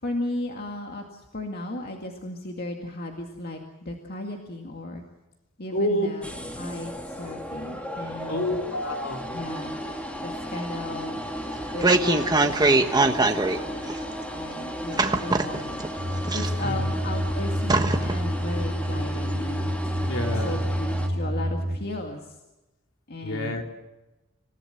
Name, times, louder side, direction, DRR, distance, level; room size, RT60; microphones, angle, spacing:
voice 1, 0.0-5.0 5.6-6.3 6.6-8.6 9.3-9.8 10.2-11.2 11.7-13.9 14.3-15.8 16.3-19.8 20.2-22.4 23.1-23.6, left 2 dB, 50° left, 2 dB, 2.1 m, -35 dB
voice 2, 5.7-6.1 8.3-9.2 16.6-16.8 20.0-20.6 23.2-23.6, left 1 dB, 65° left, 2 dB, 3.7 m, -28 dB
sound 1, 6.2-21.1, equal, 5° left, 2.3 m, -35 dB
sound 2, 11.5-13.6 13.9-14.0 15.0-15.9 16.3-16.9 17.3-17.4 17.7-18.2 18.6-18.7, right 2 dB, 20° right, 1.3 m, -22 dB
sound 3, 16.0-21.8, equal, 40° right, 6.5 m, -28 dB
27.5 x 16.5 x 7.9 m, 1.0 s
head